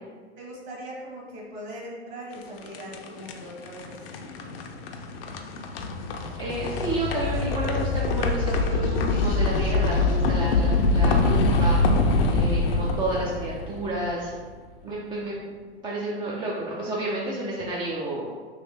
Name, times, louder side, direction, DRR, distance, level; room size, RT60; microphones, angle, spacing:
voice 1, 0.4-4.1, right 1 dB, 35° right, -3 dB, 1.3 m, -40 dB
sound 1, 2.3-14.4, left 3 dB, 60° left, 0.6 m, -25 dB
voice 2, 6.4-11.8 12.3-14.3 14.8-15.4 15.8-18.3, right 1 dB, 15° right, -5 dB, 0.4 m, -30 dB
3.1 x 3.1 x 3.3 m, 1.5 s
hypercardioid pair, 110°, 32 cm